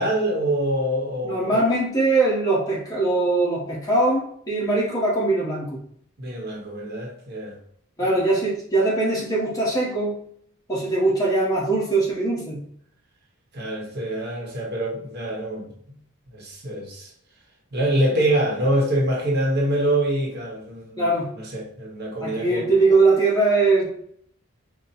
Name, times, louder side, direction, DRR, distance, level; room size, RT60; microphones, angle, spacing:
voice 1, 0.0-1.6 6.2-7.6 13.5-16.0 16.3-17.1 17.7-21.1 21.4-22.7, right 1 dB, 45° right, -1 dB, 0.9 m, -25 dB
voice 2, 1.2-5.8 8.0-10.2 10.7-12.6 21.0-21.3 22.2-23.9, right 2 dB, 15° left, -5 dB, 1.1 m, -21 dB
4.3 x 2.2 x 4.1 m, 0.66 s
head